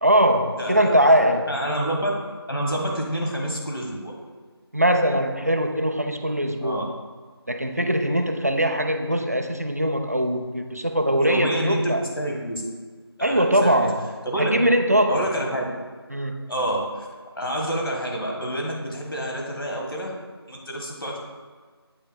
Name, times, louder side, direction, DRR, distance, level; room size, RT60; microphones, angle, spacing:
voice 1, 0.0-1.6 4.7-6.9 7.5-12.0 13.2-14.0 14.4-15.2 16.1-16.5, equal, 35° right, 5 dB, 0.4 m, -21 dB
voice 2, 0.6-1.0 1.5-2.1 2.5-4.2 6.6-6.8 11.2-12.6 13.2-13.9 14.2-14.5 15.1-15.6 16.5-17.1 17.4-20.1 20.5-21.2, right 1 dB, 60° left, 0 dB, 1.5 m, -28 dB
8.8 x 5.3 x 2.3 m, 1.5 s
figure-of-eight pair, 170°, 14 cm